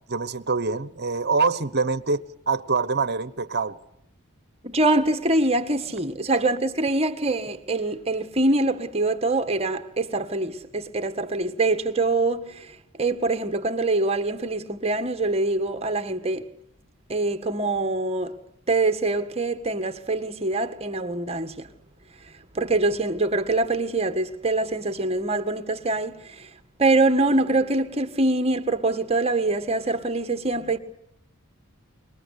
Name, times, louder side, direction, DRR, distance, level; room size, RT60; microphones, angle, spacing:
voice 1, 0.1-3.8, right 4 dB, 50° right, 1.2 m, -25 dB
voice 2, 4.6-16.5 17.1-18.4 18.7-21.7 22.6-26.5 26.8-30.8, right 2 dB, 30° right, 1.7 m, -24 dB
26.5 x 22.5 x 8.3 m
head